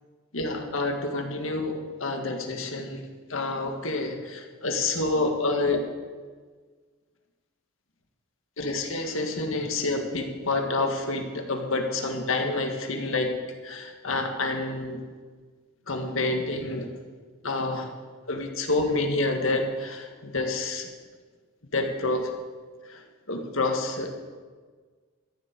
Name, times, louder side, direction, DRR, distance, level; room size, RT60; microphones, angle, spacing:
voice 1, 0.3-3.0 3.3-5.8 8.6-13.3 13.6-15.0 15.9-16.9 17.4-17.9 18.3-20.9 21.7-22.3 22.9-23.0 23.3-24.1, left 2 dB, 70° left, 4 dB, 1.8 m, -28 dB
14.0 x 7.2 x 8.2 m, 1.5 s
head